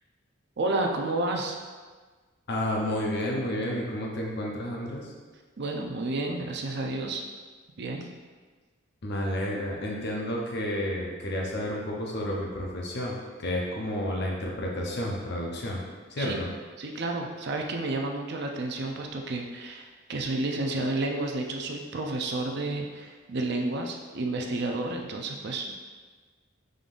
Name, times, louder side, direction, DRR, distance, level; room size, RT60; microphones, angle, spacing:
voice 1, 0.6-1.6 5.6-7.2 7.8-8.1 16.2-16.4 16.8-25.7, right 2 dB, 60° right, 2 dB, 0.5 m, -31 dB
voice 2, 2.5-5.1 9.0-15.8 16.1-16.5, left 1 dB, 60° left, -2 dB, 0.7 m, -31 dB
5.2 x 3.8 x 2.5 m, 1.4 s
head